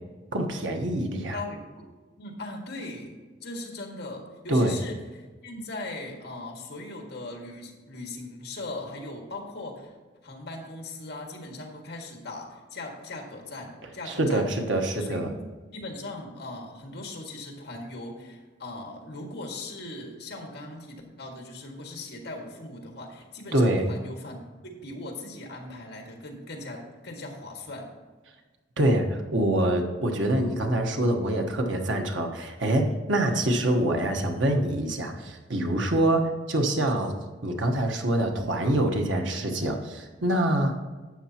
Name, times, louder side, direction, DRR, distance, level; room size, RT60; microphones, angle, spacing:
voice 1, 0.3-1.4 4.5-4.8 14.1-15.3 23.5-23.9 28.8-37.1 37.4-40.8, right 1 dB, 85° right, 4 dB, 1.2 m, -25 dB
voice 2, 1.3-1.9 2.2-3.2 3.4-9.9 10.2-14.6 15.0-15.4 15.7-27.9 33.2-33.5, left 2 dB, 60° left, 1 dB, 1.8 m, -39 dB
12.0 x 8.2 x 2.9 m, 1.3 s
head